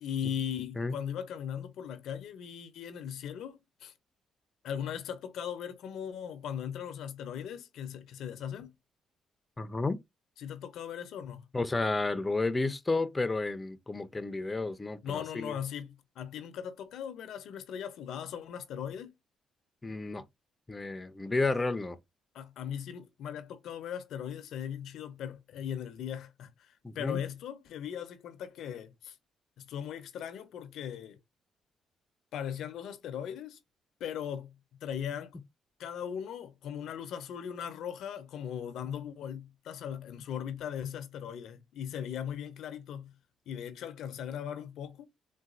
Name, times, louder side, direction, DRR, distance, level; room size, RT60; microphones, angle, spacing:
voice 1, 0.0-3.9 4.6-8.7 10.4-11.5 15.0-19.1 22.3-29.2 29.6-31.2 32.3-33.6 34.0-35.4 35.8-43.1 43.5-45.1, left 9 dB, 80° left, 0.5 m, -39 dB
voice 2, 9.6-10.0 11.5-15.5 19.8-20.2 20.7-22.0 26.8-27.2, left 3 dB, 20° left, 0.5 m, -31 dB
4.0 x 2.2 x 2.4 m
cardioid pair, 90°, 0 cm